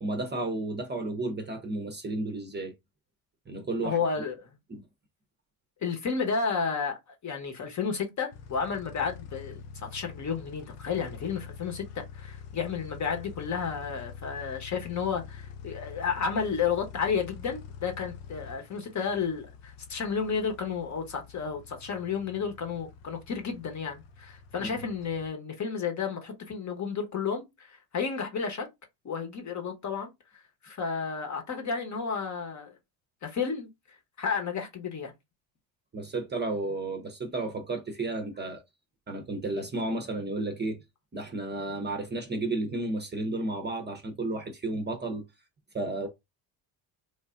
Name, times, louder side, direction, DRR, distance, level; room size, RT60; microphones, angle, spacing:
voice 1, 0.0-2.7 3.5-4.0 4.7-4.8 24.6-24.8 35.9-38.6 39.1-40.8 41.1-45.2 45.7-46.1, right 2 dB, 25° right, 0.7 m, -32 dB
voice 2, 3.8-4.5 5.8-28.7 29.0-32.7 33.2-33.7 34.2-35.1, left 6 dB, 40° left, 1.0 m, -32 dB
sound 1, 8.3-25.3, left 7 dB, 75° left, 0.7 m, -46 dB
3.1 x 2.4 x 2.4 m
supercardioid pair, 80°, 45 cm